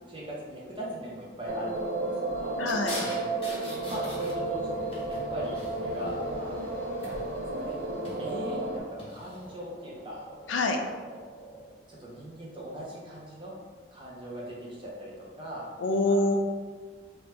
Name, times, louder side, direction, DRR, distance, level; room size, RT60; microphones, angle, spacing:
voice 1, 0.1-2.6 3.9-7.8 8.2-10.2 10.6-11.2 11.9-13.5 13.9-15.7 16.0-16.2, equal, 25° right, -5 dB, 0.8 m, -40 dB
sound 1, 1.5-8.8, right 2 dB, 55° right, 0.4 m, -33 dB
voice 2, 2.6-3.0 10.5-10.8 15.8-16.3, left 2 dB, 80° left, 3 dB, 0.4 m, -25 dB
sound 2, 2.7-4.6 4.9-6.2 7.0-7.4 7.9-8.3 9.0-9.4, left 1 dB, 30° left, 0.9 m, -41 dB
sound 3, 3.8-11.6, equal, 10° left, 0.6 m, -47 dB
3.1 x 2.9 x 3.3 m, 1.5 s
head